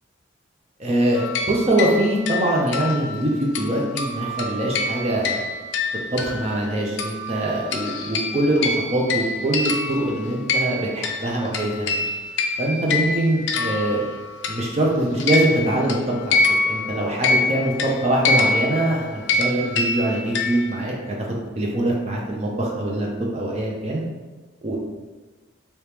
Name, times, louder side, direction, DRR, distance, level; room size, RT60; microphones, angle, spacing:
voice 1, 0.8-5.4 6.1-12.0 12.6-14.0 14.5-24.0 24.6-24.8, right 1 dB, 30° right, -2 dB, 0.5 m, -23 dB
sound 1, 1.2-6.7 7.0-14.8 15.2-20.9, left 3 dB, 60° left, 0.4 m, -26 dB
3.0 x 2.8 x 3.4 m, 1.3 s
head